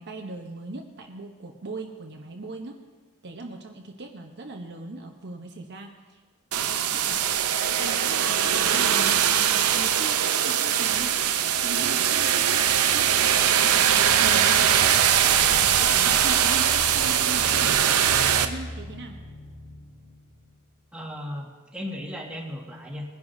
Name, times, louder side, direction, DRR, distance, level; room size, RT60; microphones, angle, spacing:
voice 1, 0.0-2.7 3.2-6.2 6.9-7.2 7.7-9.3 9.7-11.3 11.6-13.9 14.2-17.8 18.4-19.2, right 2 dB, 50° right, 2 dB, 0.9 m, -39 dB
sound 1, 6.5-18.4, right 9 dB, 90° right, 0.7 m, -21 dB
sound 2, 15.3-20.7, left 1 dB, 80° left, 3.6 m, -40 dB
voice 2, 20.9-23.1, left 1 dB, 5° right, -3 dB, 1.8 m, -36 dB
21.0 x 11.0 x 2.7 m, 1.4 s
head